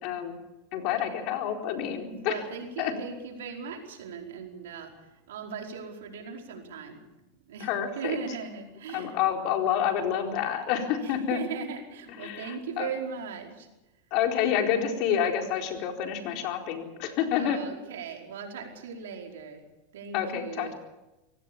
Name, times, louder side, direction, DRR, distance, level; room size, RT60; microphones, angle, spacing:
voice 1, 0.0-0.3 0.7-2.4 2.8-2.9 7.6-8.2 8.9-11.4 12.2-12.9 14.1-17.6 20.1-20.7, left 9 dB, 55° left, 3 dB, 4.3 m, -28 dB
voice 2, 2.0-7.0 7.5-7.7 7.9-9.1 11.0-13.7 17.3-19.6 19.9-20.7, right 6 dB, 85° right, 2 dB, 4.9 m, -38 dB
24.5 x 18.0 x 7.2 m, 0.99 s
supercardioid pair, 125°, 0 cm